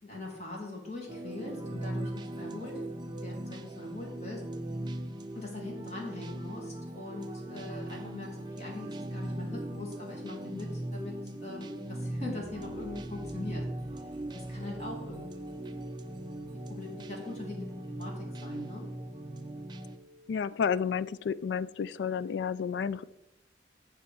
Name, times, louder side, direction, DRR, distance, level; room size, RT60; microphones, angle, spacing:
voice 1, 0.0-4.4 5.3-13.6 14.1-15.8 16.7-18.9, left 2 dB, 40° left, -2 dB, 2.1 m, -42 dB
sound 1, 1.1-20.0, right 1 dB, 25° right, 0.5 m, -39 dB
sound 2, 12.1-18.0, equal, 5° left, 1.3 m, -54 dB
sound 3, 14.7-20.5, equal, 55° left, 1.6 m, -54 dB
voice 2, 20.3-23.0, left 6 dB, 70° left, 17 dB, 0.3 m, -31 dB
9.7 x 3.3 x 6.8 m, 0.88 s
head